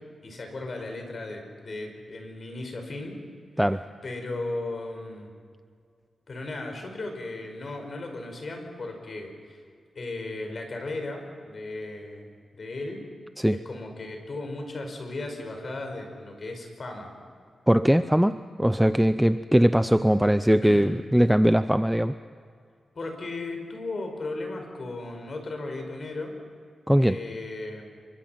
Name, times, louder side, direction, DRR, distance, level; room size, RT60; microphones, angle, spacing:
voice 1, 0.2-3.2 4.0-5.3 6.3-9.6 10.0-12.3 12.5-13.0 13.5-17.1 20.6-20.9 23.0-26.3 27.0-27.9, left 2 dB, 45° left, 4 dB, 5.4 m, -36 dB
voice 2, 17.7-22.2 26.9-27.2, equal, 5° right, 11 dB, 0.5 m, -21 dB
28.0 x 24.5 x 5.9 m, 2.2 s
wide cardioid pair, 125°, 0 cm